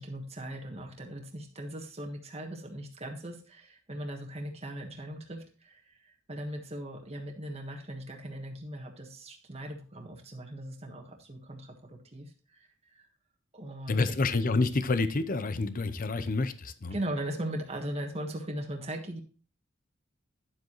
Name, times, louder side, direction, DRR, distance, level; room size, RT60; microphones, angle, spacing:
voice 1, 0.0-13.1 13.5-14.0 16.9-19.2, right 1 dB, 30° right, 2 dB, 1.5 m, -39 dB
voice 2, 13.9-17.0, left 3 dB, 45° left, 12 dB, 0.7 m, -28 dB
10.5 x 7.4 x 3.0 m, 0.37 s
head